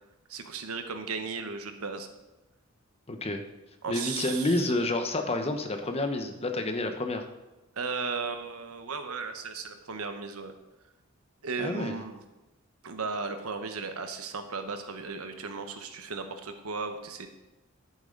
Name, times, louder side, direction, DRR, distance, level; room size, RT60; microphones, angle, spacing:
voice 1, 0.3-2.1 3.8-4.6 7.8-10.5 11.4-12.2 12.8-17.3, right 4 dB, 90° right, 7 dB, 1.1 m, -35 dB
voice 2, 3.1-3.4 3.9-7.2 11.6-12.0, left 2 dB, 30° left, 6 dB, 0.9 m, -29 dB
10.5 x 8.6 x 3.9 m, 1.1 s
head